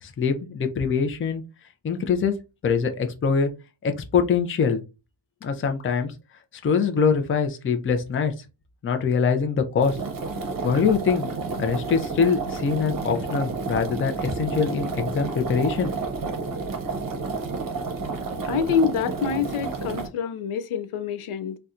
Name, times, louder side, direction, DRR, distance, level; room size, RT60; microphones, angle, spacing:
voice 1, 0.0-1.4 1.8-2.3 2.6-3.5 3.8-4.8 5.4-6.1 6.6-8.3 8.8-10.0 10.6-11.3 11.6-15.9, left 6 dB, 30° left, 0.4 m, -23 dB
sound 1, 9.8-20.1, right 4 dB, 45° right, 0.7 m, -30 dB
voice 2, 18.5-21.6, left 6 dB, 85° left, 0.6 m, -26 dB
4.1 x 2.2 x 2.4 m
wide cardioid pair, 175°, 49 cm